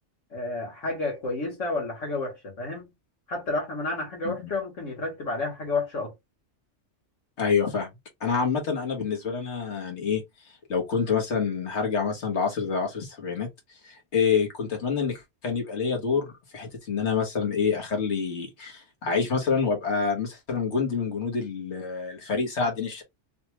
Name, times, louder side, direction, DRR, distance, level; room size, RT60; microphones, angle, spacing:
voice 1, 0.3-2.9 3.3-6.1, left 3 dB, 80° left, 1.7 m, -30 dB
voice 2, 7.4-7.9 8.2-10.2 10.7-13.5 13.8-23.0, left 5 dB, 65° left, 1.4 m, -27 dB
3.3 x 2.3 x 3.0 m
omnidirectional pair, 1.3 m